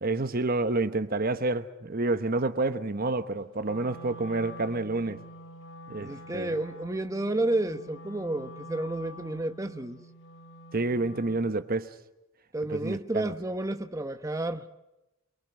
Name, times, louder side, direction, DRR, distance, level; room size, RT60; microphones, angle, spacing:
voice 1, 0.0-5.2 5.9-6.6 10.7-11.9 12.7-13.3, right 2 dB, 45° right, 1.0 m, -29 dB
Wind instrument woodwind instrument, 3.6-11.6, equal, 90° left, 5.0 m, -46 dB
voice 2, 6.0-10.0 12.5-14.7, right 2 dB, 15° right, 1.0 m, -31 dB
27.5 x 23.0 x 6.5 m
head